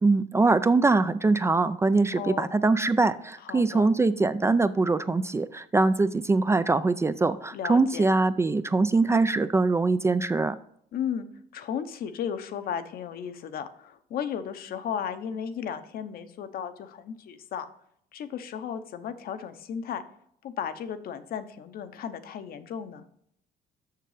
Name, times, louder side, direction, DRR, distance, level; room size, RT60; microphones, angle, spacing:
voice 1, 0.0-10.6, right 3 dB, 15° right, 13 dB, 0.3 m, -23 dB
voice 2, 2.2-2.5 3.4-3.9 7.5-8.0 10.9-11.3 11.5-17.7 18.1-20.0 20.4-23.0, left 8 dB, 65° left, 10 dB, 0.9 m, -34 dB
6.7 x 6.6 x 4.9 m, 0.68 s
cardioid pair, 110°, 17 cm